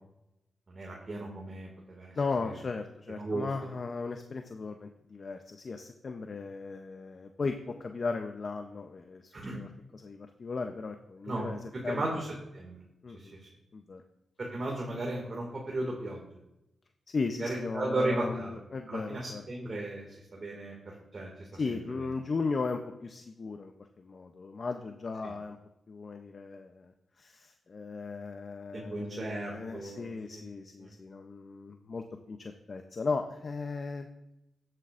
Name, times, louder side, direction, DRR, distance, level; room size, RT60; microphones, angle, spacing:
voice 1, 0.7-2.1 2.4-2.5 3.1-3.5 9.3-9.6 11.2-11.6 11.9-12.8 13.1-13.5 14.4-16.3 17.4-18.5 18.9-21.6 25.2-25.3 28.7-30.4 30.8-30.9, right 2 dB, 50° right, -2 dB, 2.1 m, -36 dB
voice 2, 2.2-9.7 9.9-12.1 13.0-13.3 13.7-14.0 17.1-19.4 21.6-23.7 24.0-25.6 25.9-26.9 27.2-34.1, left 4 dB, 55° left, 6 dB, 0.6 m, -36 dB
13.0 x 7.7 x 2.5 m, 0.87 s
cardioid pair, 60°, 0 cm